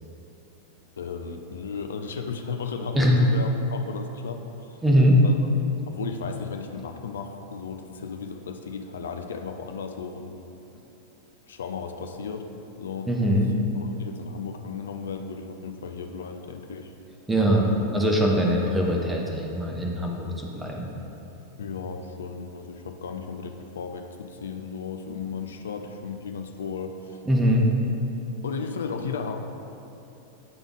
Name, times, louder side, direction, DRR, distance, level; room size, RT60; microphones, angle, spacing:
voice 1, 1.0-4.4 4.7-4.8 5.2-5.4 5.9-10.4 10.7-10.8 11.5-12.5 12.8-13.1 13.8-16.9 17.4-17.8 21.6-27.2 28.4-29.4, left 5 dB, 65° left, 5 dB, 0.4 m, -35 dB
voice 2, 4.8-5.2 13.1-13.5 17.3-20.3 20.6-20.9 27.3-27.7, equal, 10° right, -1 dB, 0.8 m, -21 dB
8.8 x 3.5 x 3.6 m, 2.9 s
figure-of-eight pair, 90°, 0 cm